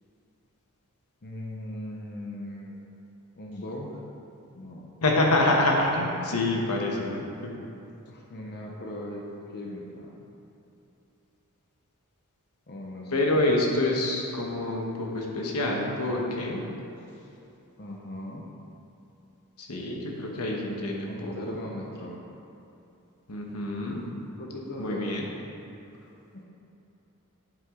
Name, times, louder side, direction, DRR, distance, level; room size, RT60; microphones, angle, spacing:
voice 1, 1.2-2.9 3.4-4.0 4.5-4.9 8.1-10.3 12.7-13.6 17.8-18.4 21.1-22.2 24.4-25.3 26.3-26.4, left 1 dB, 45° left, -2 dB, 0.9 m, -39 dB
voice 2, 5.0-7.5 13.1-16.6 19.6-21.3 23.3-24.1 24.8-25.2, left 2 dB, 80° left, -1 dB, 1.2 m, -26 dB
8.4 x 8.0 x 3.8 m, 2.8 s
head